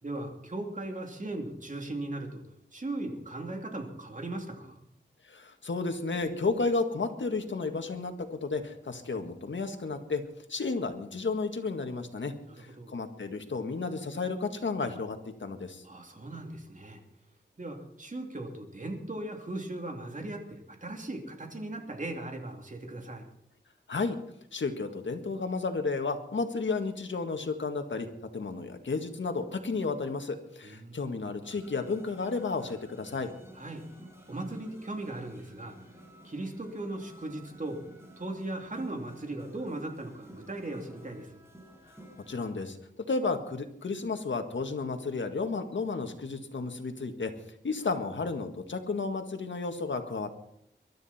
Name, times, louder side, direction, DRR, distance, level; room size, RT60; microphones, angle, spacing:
voice 1, 0.0-2.4 2.7-4.8 12.5-13.0 15.8-17.0 17.6-23.2 30.6-31.0 33.5-33.8 34.3-35.9 36.2-37.8 38.2-41.4, right 2 dB, 40° right, 3 dB, 3.0 m, -38 dB
voice 2, 5.2-10.2 10.5-15.8 23.9-24.2 24.5-28.1 28.3-33.3 42.3-42.8 43.1-47.3 47.6-50.3, left 4 dB, 80° left, 6 dB, 1.8 m, -32 dB
sound 1, 31.4-42.6, equal, 15° right, 4.9 m, -53 dB
23.0 x 12.5 x 4.4 m, 0.71 s
wide cardioid pair, 90°, 19 cm